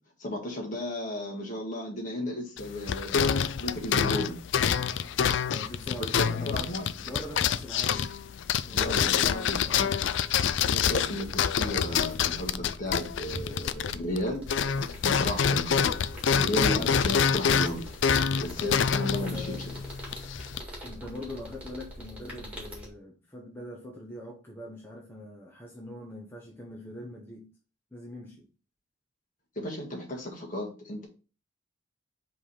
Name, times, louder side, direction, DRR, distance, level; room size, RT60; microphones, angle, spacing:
voice 1, 0.2-4.4 6.0-6.9 8.7-9.9 10.6-14.4 15.0-16.0 16.4-17.9 18.4-19.6 29.6-31.1, left 1 dB, 40° left, 1.7 m, -34 dB
sound 1, 2.6-14.2 14.5-20.6, left 7 dB, 60° left, 0.3 m, -27 dB
voice 2, 5.5-6.7 7.0-8.1 8.6-10.1 19.0-19.6 20.8-27.5 27.9-28.5, left 1 dB, 10° left, 0.9 m, -42 dB
sound 2, 11.2-22.9, equal, 5° right, 1.9 m, -44 dB
5.4 x 3.3 x 5.5 m
head